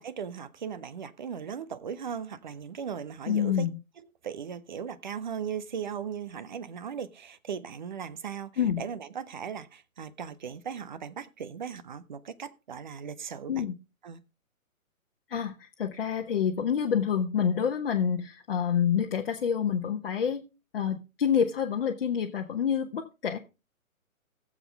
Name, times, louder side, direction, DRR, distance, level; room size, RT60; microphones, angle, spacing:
voice 1, 0.0-3.7 4.2-8.5 8.8-13.6 14.0-14.2, right 7 dB, 35° right, 0.7 m, -38 dB
voice 2, 3.3-3.7 8.6-8.8 13.5-13.7 15.3-20.4 20.7-23.4, left 8 dB, 45° left, 1.1 m, -27 dB
19.5 x 7.3 x 3.4 m
figure-of-eight pair, 130°, 42 cm